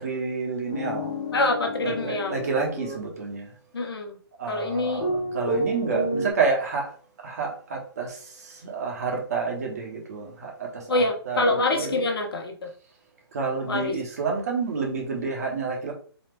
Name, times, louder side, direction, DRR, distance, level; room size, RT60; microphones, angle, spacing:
voice 1, 0.0-1.1 1.8-3.5 4.4-5.1 5.3-6.9 7.2-8.2 8.4-12.1 13.3-15.9, right 4 dB, 40° right, 0 dB, 1.3 m, -29 dB
sound 1, 0.7-2.9 5.0-6.3, equal, 15° left, 0.6 m, -30 dB
voice 2, 1.3-2.4 3.7-4.2 4.5-5.0 10.9-12.7 13.7-14.0, left 2 dB, 65° left, 3 dB, 1.1 m, -25 dB
4.1 x 2.8 x 3.3 m, 0.43 s
hypercardioid pair, 170°, 13 cm